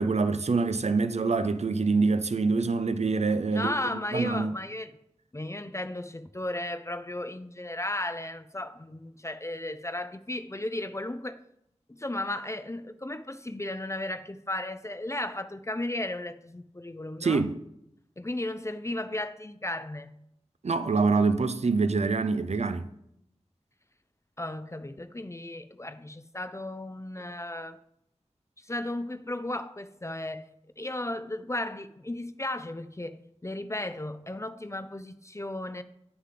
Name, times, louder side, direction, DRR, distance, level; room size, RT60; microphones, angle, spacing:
voice 1, 0.0-3.7 4.1-4.5 17.2-17.6 20.6-22.9, right 4 dB, 70° right, 0.5 m, -25 dB
voice 2, 3.5-4.9 5.3-11.4 11.9-17.5 18.2-20.2 24.4-27.8 28.6-30.5 30.8-35.8, left 1 dB, 25° left, 0.5 m, -35 dB
9.2 x 6.8 x 3.8 m
wide cardioid pair, 45°, 12 cm